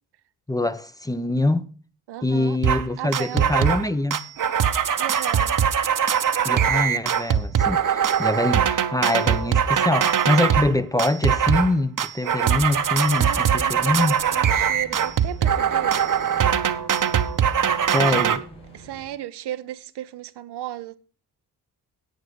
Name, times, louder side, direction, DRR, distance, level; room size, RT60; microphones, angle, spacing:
voice 1, 0.5-1.7 2.2-4.2 6.4-14.1 17.9-18.4, left 2 dB, 10° left, 0.8 m, -24 dB
voice 2, 2.1-2.6 3.0-3.5 5.0-5.6 13.1-16.0 18.0-18.4 18.7-21.0, right 12 dB, 75° right, 0.8 m, -35 dB
sound 1, 2.6-2.8 3.1-3.9 4.1-10.7 11.0-11.7 12.0-18.4, right 8 dB, 50° right, 1.0 m, -21 dB
sound 2, 12.6-19.0, equal, 85° left, 6.1 m, -45 dB
10.5 x 8.2 x 5.4 m
supercardioid pair, 50°, 40 cm